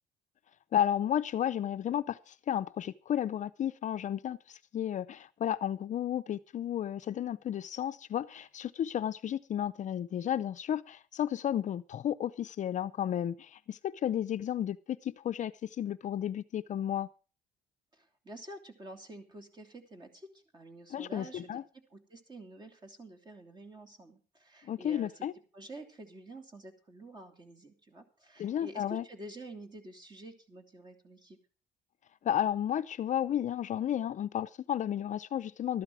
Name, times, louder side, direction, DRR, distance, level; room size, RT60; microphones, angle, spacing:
voice 1, 0.7-17.1 20.9-21.6 24.6-25.3 28.4-29.0 32.2-35.8, left 10 dB, 45° left, 0.5 m, -33 dB
voice 2, 17.9-20.3 20.5-25.1 25.5-31.4, right 1 dB, 25° right, 3.0 m, -49 dB
13.5 x 12.0 x 4.7 m
cardioid pair, 110°, 17 cm